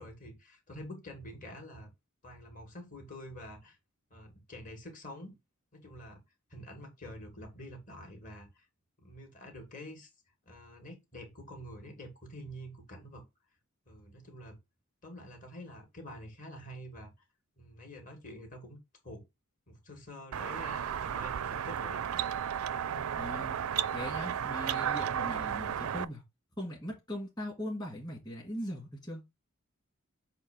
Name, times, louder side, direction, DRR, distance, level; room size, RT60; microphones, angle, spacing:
voice 1, 0.0-1.9 2.2-3.8 4.1-5.4 5.7-6.2 6.5-8.6 9.0-10.1 10.4-13.2 13.9-14.6 15.0-17.1 17.6-18.8 19.0-19.2 19.7-22.0 22.7-23.0, equal, 40° left, 2.3 m, -47 dB
sound 1, 20.3-26.0, right 9 dB, 85° right, 0.4 m, -33 dB
voice 2, 23.2-23.6 23.9-26.2 26.6-29.2, equal, 20° left, 1.9 m, -40 dB
7.4 x 2.7 x 5.1 m
head